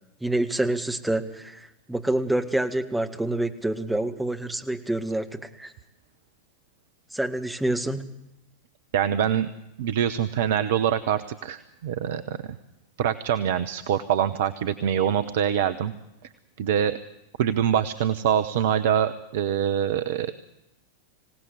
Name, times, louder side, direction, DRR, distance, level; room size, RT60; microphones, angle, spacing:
voice 1, 0.2-5.7 7.1-8.2, right 1 dB, 5° right, 6 dB, 1.9 m, -27 dB
voice 2, 8.9-9.5 9.8-12.5 13.0-15.9 16.6-17.0 17.4-20.3, right 9 dB, 55° right, 12 dB, 0.9 m, -24 dB
25.5 x 17.5 x 8.2 m, 0.90 s
figure-of-eight pair, 90°, 0 cm